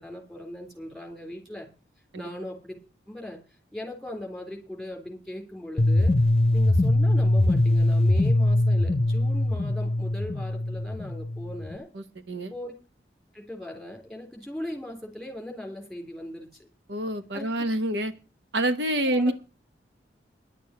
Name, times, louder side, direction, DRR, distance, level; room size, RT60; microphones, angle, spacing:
voice 1, 0.0-1.7 2.2-2.8 3.1-3.4 3.7-6.1 6.5-11.9 12.5-12.7 13.3-16.7 17.3-17.5 19.0-19.3, left 1 dB, ahead, 2 dB, 3.7 m, -39 dB
sound 1, 5.8-11.8, left 1 dB, 35° left, 0.8 m, -22 dB
voice 2, 11.9-12.5 16.9-18.1 18.5-19.3, right 1 dB, 75° right, 10 dB, 1.0 m, -27 dB
11.0 x 6.8 x 8.4 m, 0.34 s
head